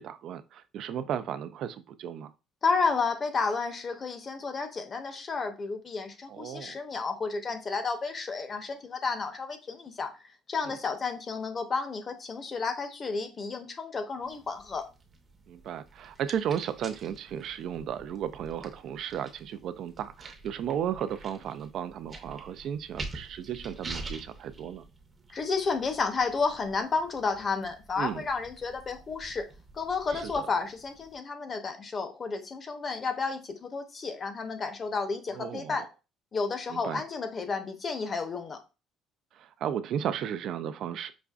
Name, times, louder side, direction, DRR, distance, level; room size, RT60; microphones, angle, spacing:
voice 1, 0.0-2.3 6.3-6.8 10.7-10.8 15.5-24.8 28.0-28.3 30.1-30.5 35.3-35.9 36.7-37.0 39.4-41.1, right 9 dB, 65° right, 0.3 m, -34 dB
voice 2, 2.6-10.1 10.5-14.8 25.3-29.5 29.7-35.8 36.3-38.6, left 4 dB, 35° left, 0.7 m, -31 dB
sound 1, 14.2-31.1, right 2 dB, 30° right, 0.7 m, -47 dB
5.0 x 2.4 x 2.3 m
cardioid pair, 100°, 0 cm